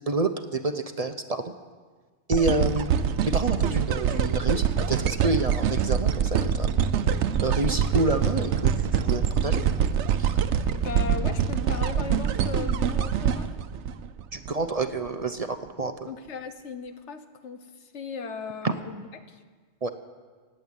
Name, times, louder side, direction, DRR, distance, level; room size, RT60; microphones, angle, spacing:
voice 1, 0.0-1.5 2.3-2.9 3.2-6.7 7.4-9.6 10.2-10.3 14.3-16.1 18.6-18.7 19.8-19.9, right 3 dB, 40° right, 8 dB, 0.6 m, -28 dB
sound 1, 2.3-14.5 15.1-15.2, right 7 dB, 85° right, 1.0 m, -25 dB
voice 2, 10.7-13.6 16.1-19.4, left 5 dB, 85° left, 9 dB, 1.3 m, -37 dB
18.0 x 7.8 x 9.0 m, 1.5 s
omnidirectional pair, 1.2 m